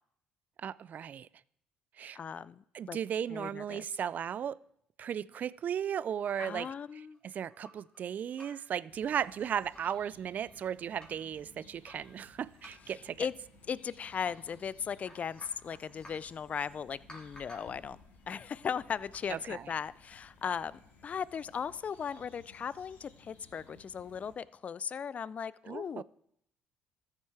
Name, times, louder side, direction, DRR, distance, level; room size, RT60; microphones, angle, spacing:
voice 1, 0.6-1.3 2.0-2.2 2.7-4.6 5.0-13.3 19.3-19.7 25.7-26.0, right 8 dB, 50° right, 20 dB, 0.4 m, -36 dB
voice 2, 2.2-3.0 3.3-3.8 6.4-7.2 13.2-13.3 13.7-18.0 18.3-20.7 21.0-26.0, left 7 dB, 40° left, 20 dB, 0.4 m, -37 dB
sound 1, 6.8-8.0 8.3-8.8 9.2-9.3 9.5-10.0 10.5-11.2 11.8-13.1 14.0-14.6 14.9-16.3 17.1-17.8 19.0-19.3, equal, 25° left, 3.3 m, -55 dB
sound 2, 8.9-24.3, left 3 dB, 60° left, 2.9 m, -59 dB
13.5 x 7.4 x 4.8 m, 0.70 s
supercardioid pair, 80°, 4 cm